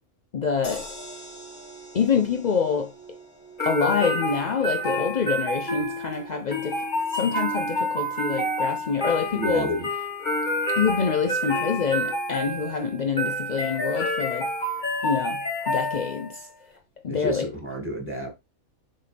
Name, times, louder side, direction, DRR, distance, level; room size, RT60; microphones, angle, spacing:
voice 1, 0.3-0.9 1.9-2.9 3.6-6.8 7.1-9.7 10.7-14.5 15.0-16.5 17.0-17.5, left 6 dB, 60° left, 0.4 m, -26 dB
sound 1, 0.6-12.9 13.3-13.4 13.6-13.7, right 1 dB, 80° left, 2.1 m, -47 dB
sound 2, 3.6-16.4, equal, 35° left, 1.8 m, -28 dB
voice 2, 9.3-9.9 17.1-18.3, equal, 10° right, 2.1 m, -30 dB
6.7 x 4.4 x 3.4 m
omnidirectional pair, 1.5 m